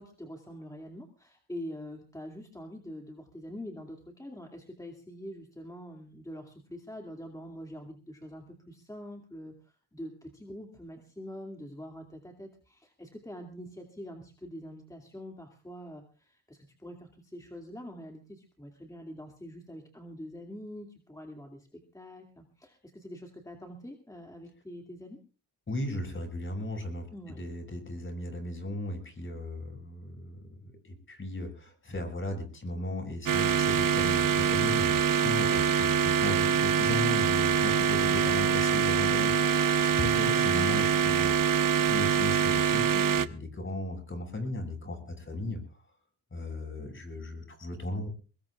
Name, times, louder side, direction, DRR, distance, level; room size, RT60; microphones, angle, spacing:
voice 1, 0.0-25.2 27.1-27.4 42.9-43.2, equal, 10° left, 2 dB, 2.5 m, -45 dB
voice 2, 25.7-41.3 41.9-42.9 43.2-45.8 46.3-48.1, left 1 dB, 30° left, 5 dB, 6.7 m, -36 dB
sound 1, 33.3-43.3, right 7 dB, 55° right, 1.0 m, -25 dB
23.0 x 21.0 x 2.4 m, 0.37 s
cardioid pair, 90°, 39 cm